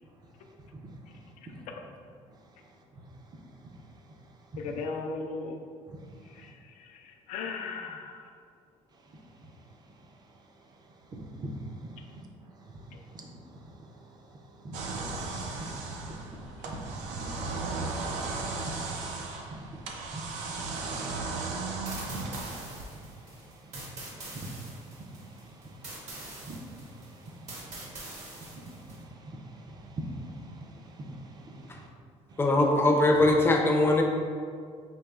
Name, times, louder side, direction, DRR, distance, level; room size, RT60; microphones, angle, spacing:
voice 1, 4.6-5.6 6.3-8.3 12.9-13.0 16.6-16.7, left 4 dB, 85° left, 3 dB, 0.4 m, -37 dB
voice 2, 11.1-11.5 12.1-12.2 13.1-13.3 14.6-15.4 15.7-16.2 16.7-17.1 17.3-17.4 18.6-18.7 19.0-20.2 20.5-21.0 21.3-22.2 22.4-22.6 22.9-23.0 23.4-31.9 32.3-32.4, right 1 dB, 35° right, 1 dB, 0.5 m, -44 dB
sound 1, 14.7-23.0, right 3 dB, 85° right, 0.5 m, -36 dB
sound 2, 21.9-29.0, right 2 dB, 65° right, 1.0 m, -44 dB
voice 3, 32.4-34.0, left 2 dB, 20° left, 1 dB, 0.5 m, -21 dB
5.3 x 2.8 x 2.3 m, 2.1 s
cardioid pair, 115°, 12 cm